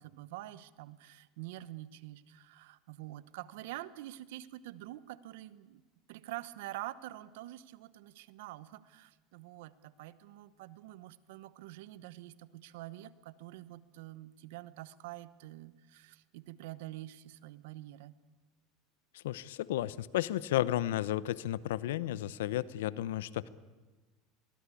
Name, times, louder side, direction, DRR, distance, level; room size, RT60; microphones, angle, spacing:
voice 1, 0.0-5.8 6.1-18.1, right 15 dB, 80° right, 16 dB, 1.0 m, -46 dB
voice 2, 19.1-23.5, left 13 dB, 85° left, 19 dB, 0.7 m, -33 dB
23.0 x 18.5 x 8.5 m, 1.3 s
supercardioid pair, 110°, 0 cm